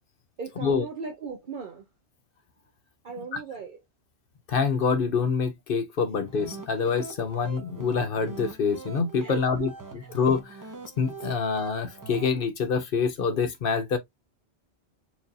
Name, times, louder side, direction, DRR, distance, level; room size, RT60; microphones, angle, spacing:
voice 1, 0.4-1.8 3.0-3.8 7.2-7.3 9.2-9.7 10.0-10.1, right 6 dB, 55° right, 0.8 m, -36 dB
voice 2, 4.5-9.7 10.1-10.6 11.0-14.0, left 5 dB, 60° left, 0.9 m, -26 dB
sound 1, 6.2-12.3, right 4 dB, 20° right, 0.8 m, -42 dB
4.5 x 2.7 x 2.6 m
omnidirectional pair, 1.1 m